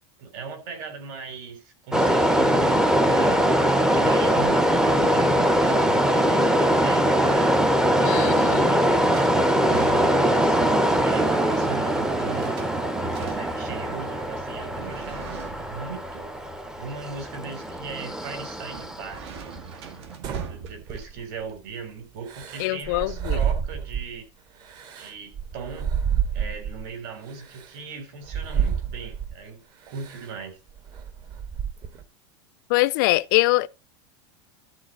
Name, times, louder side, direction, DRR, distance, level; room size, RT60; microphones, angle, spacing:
voice 1, 0.2-3.6 3.9-7.6 7.9-10.6 11.0-12.6 13.0-16.3 16.8-19.5 20.5-24.3 24.9-25.9 26.3-30.6, right 5 dB, 50° right, 3.7 m, -38 dB
sound 1, 1.9-19.6, equal, 5° right, 0.6 m, -22 dB
voice 2, 8.0-8.7 22.6-23.4 32.7-33.7, left 21 dB, 50° left, 0.4 m, -23 dB
sound 2, 8.2-21.5, right 6 dB, 75° right, 2.1 m, -43 dB
sound 3, 20.2-21.4 22.3-24.2 24.6-26.9 27.5-27.7 28.3-29.4 30.0-30.3 30.7-32.0, right 8 dB, 30° right, 1.0 m, -29 dB
12.0 x 4.1 x 7.5 m
supercardioid pair, 170°, 14 cm